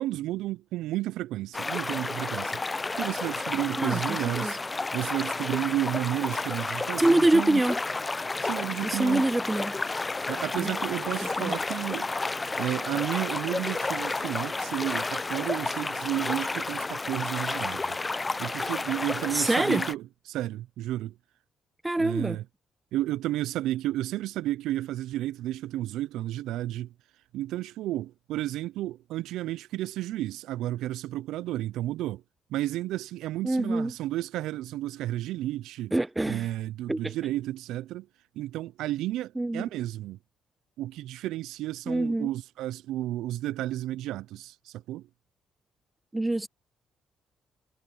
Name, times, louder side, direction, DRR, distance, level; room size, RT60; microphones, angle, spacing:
voice 1, 0.0-4.6 4.9-7.6 8.4-9.3 10.3-12.1 12.6-18.0 18.4-21.1 22.0-22.4 22.9-26.9 27.3-32.2 32.5-35.9 36.3-38.1 38.4-40.2 40.8-45.1, right 14 dB, 90° right, 0.3 m, -32 dB
sound 1, 1.5-19.9, left 3 dB, 20° left, 0.4 m, -31 dB
voice 2, 3.8-4.2 4.4-4.6 7.0-7.8 8.8-9.8 10.6-10.7 11.4-11.5 19.3-19.8 21.8-22.4 33.4-33.9 35.9-36.5 36.9-37.1 39.4-39.7 41.9-42.3 46.1-46.5, right 2 dB, 15° right, 0.9 m, -25 dB
cardioid pair, 90°, 0 cm